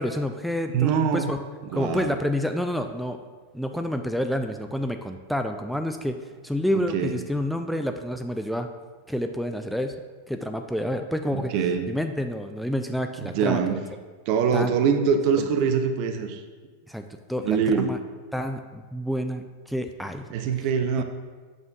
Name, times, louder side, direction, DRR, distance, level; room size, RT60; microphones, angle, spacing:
voice 1, 0.0-1.4 1.7-3.2 3.5-6.2 6.4-8.7 9.1-9.9 10.3-11.5 11.9-13.8 14.5-14.8 15.4-15.5 16.9-17.0 17.3-18.0 18.3-20.3, equal, ahead, 6 dB, 0.3 m, -28 dB
voice 2, 0.7-1.3 1.6-2.2 6.7-7.2 11.5-11.9 13.3-13.8 14.3-16.4 17.4-17.9 20.3-21.0, right 6 dB, 45° right, 8 dB, 0.6 m, -23 dB
8.6 x 6.2 x 2.5 m, 1.4 s
figure-of-eight pair, 90°, 0 cm